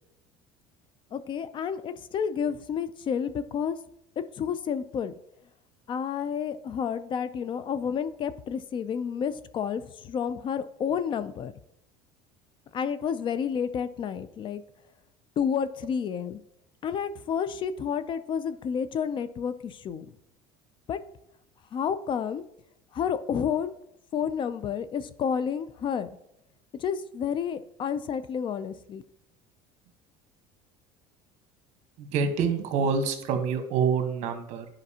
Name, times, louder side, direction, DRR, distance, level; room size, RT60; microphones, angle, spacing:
voice 1, 1.1-3.8 4.2-5.1 5.9-11.5 12.7-14.6 15.4-16.4 16.8-20.1 20.9-21.0 21.7-22.4 22.9-23.7 24.1-26.1 26.8-29.0, left 7 dB, 35° left, 14 dB, 0.4 m, -30 dB
voice 2, 32.0-34.7, right 6 dB, 60° right, 7 dB, 1.1 m, -26 dB
10.5 x 5.1 x 2.8 m, 0.79 s
supercardioid pair, 115°, 14 cm